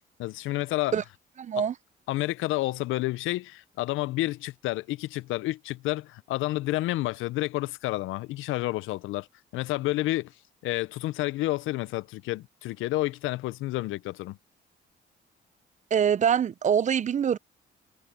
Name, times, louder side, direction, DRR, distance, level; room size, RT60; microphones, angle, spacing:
voice 1, 0.2-1.0 1.6-1.7 2.1-9.3 9.5-10.3 10.6-14.4, left 18 dB, 90° left, 0.5 m, -30 dB
voice 2, 1.4-1.7 15.9-17.4, right 8 dB, 40° right, 0.5 m, -24 dB
cardioid pair, 90°, 20 cm